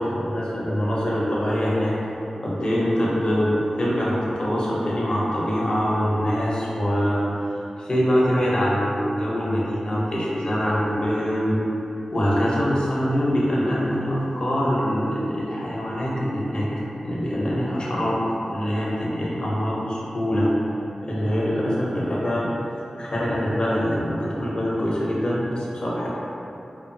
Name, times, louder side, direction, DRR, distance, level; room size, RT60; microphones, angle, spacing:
voice 1, 0.0-2.0 2.4-11.6 12.1-16.7 17.0-18.2 18.5-20.5 21.0-22.5 23.0-26.1, equal, 45° left, -6 dB, 0.6 m, -24 dB
2.8 x 2.2 x 2.6 m, 2.9 s
wide cardioid pair, 65°, 2 cm